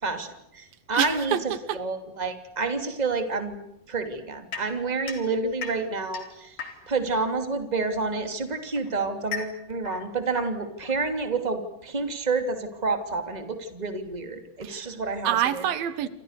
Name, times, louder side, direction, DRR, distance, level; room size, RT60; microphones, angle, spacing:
voice 1, 0.0-1.3 1.8-3.6 3.9-6.6 6.9-15.6, right 3 dB, 10° right, 7 dB, 2.6 m, -29 dB
voice 2, 0.9-1.8 14.6-14.9 15.2-16.1, right 10 dB, 85° right, 14 dB, 3.2 m, -27 dB
sound 1, 4.5-7.1 8.1-11.5, left 6 dB, 65° left, 5.3 m, -39 dB
28.5 x 27.0 x 6.8 m, 0.80 s
omnidirectional pair, 4.1 m